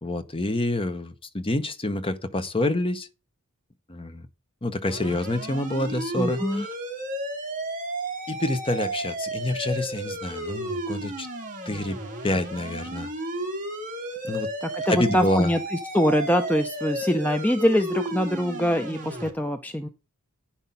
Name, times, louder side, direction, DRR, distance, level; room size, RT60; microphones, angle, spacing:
voice 1, 0.0-3.1 3.9-4.3 4.6-6.7 8.3-11.3 11.6-12.0 12.2-13.1 14.2-14.5 14.9-15.5, left 1 dB, 25° left, 1.0 m, -27 dB
sound 1, 4.9-19.3, right 1 dB, 35° right, 2.5 m, -33 dB
voice 2, 6.2-6.7 14.7-15.6 15.9-19.9, equal, 5° left, 0.6 m, -23 dB
10.0 x 5.9 x 5.4 m
head